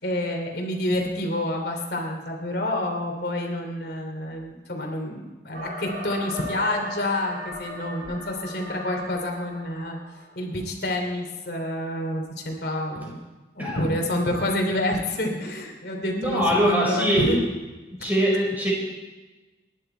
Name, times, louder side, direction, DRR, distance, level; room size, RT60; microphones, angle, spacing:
voice 1, 0.0-10.0 10.4-13.2 13.5-17.4, left 1 dB, 65° left, 1 dB, 2.9 m, -28 dB
sound 1, 5.5-10.4, equal, 55° right, 3.3 m, -37 dB
voice 2, 13.6-13.9 16.1-17.4 18.0-18.7, equal, 10° right, -4 dB, 4.8 m, -22 dB
29.0 x 11.0 x 4.4 m, 1.2 s
head